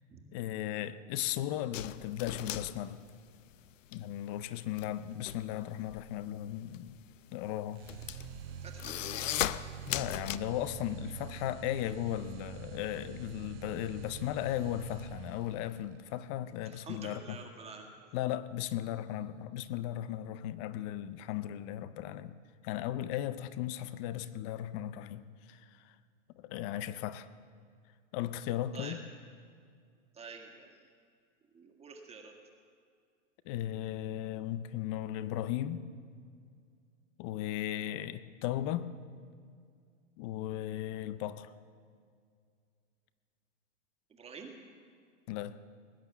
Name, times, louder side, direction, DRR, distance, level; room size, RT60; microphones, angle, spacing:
voice 1, 0.3-3.0 3.9-7.0 7.3-7.9 9.9-17.4 18.1-22.4 22.6-25.9 26.3-27.3 28.1-29.0 33.5-35.9 37.2-38.9 40.2-41.5 45.3-45.6, left 12 dB, 25° left, 14 dB, 0.4 m, -36 dB
sound 1, 1.7-4.0 4.3-10.4, left 12 dB, 75° left, 0.7 m, -37 dB
sound 2, 7.8-15.7, right 10 dB, 50° right, 0.9 m, -46 dB
voice 2, 8.6-8.9 16.6-17.9 28.7-29.0 30.1-30.8 31.5-32.3 44.1-44.5, right 5 dB, 15° right, 2 dB, 1.8 m, -48 dB
19.5 x 9.2 x 7.0 m, 2.2 s
hypercardioid pair, 130°, 39 cm